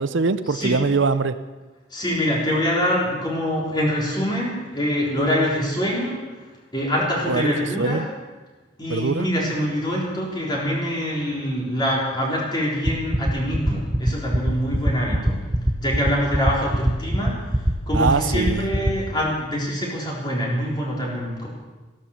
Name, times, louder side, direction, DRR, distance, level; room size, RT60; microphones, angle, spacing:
voice 1, 0.0-1.3 7.3-8.1 8.9-9.3 17.9-18.7, right 4 dB, 70° right, 12 dB, 0.6 m, -22 dB
voice 2, 1.9-6.2 6.7-8.0 8.8-15.4 15.8-17.3 17.9-21.5, equal, 20° left, -4 dB, 4.0 m, -24 dB
sound 1, 12.9-18.9, equal, 15° right, 1.0 m, -20 dB
14.5 x 12.5 x 7.2 m, 1.3 s
head